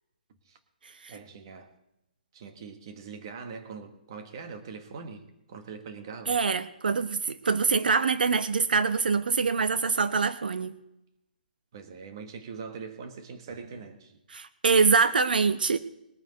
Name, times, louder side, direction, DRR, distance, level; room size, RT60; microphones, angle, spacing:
voice 1, 1.1-1.7 2.3-6.4 11.7-14.2, right 5 dB, 30° right, 7 dB, 1.3 m, -42 dB
voice 2, 6.3-10.7 14.3-15.8, right 5 dB, 75° right, 12 dB, 0.8 m, -24 dB
21.0 x 8.9 x 4.1 m, 0.87 s
hypercardioid pair, 175°, 5 cm